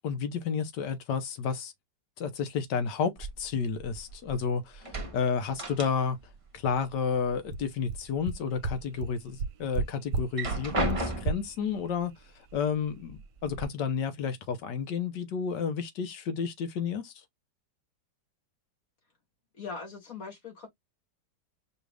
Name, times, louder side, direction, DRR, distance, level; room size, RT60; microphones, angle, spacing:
voice 1, 0.0-1.7 2.2-6.2 6.5-12.1 12.5-17.1, left 6 dB, 75° left, 1.5 m, -31 dB
sound 1, 3.2-4.4 4.7-6.3 6.6-7.6 8.0-8.8 9.3-9.4 10.2-11.6 12.5-12.6 13.0-13.6, right 2 dB, 25° right, 0.8 m, -35 dB
sound 2, 7.2-7.3 7.5-7.6 7.9-8.0 8.3-8.4 8.6-8.7 9.0-9.1 9.4-9.8 10.1-10.2 10.5-10.6 10.9-11.0 11.3-11.4, right 5 dB, 70° right, 1.0 m, -30 dB
voice 2, 19.5-20.7, left 4 dB, 50° left, 1.6 m, -40 dB
5.0 x 2.4 x 3.3 m
omnidirectional pair, 2.0 m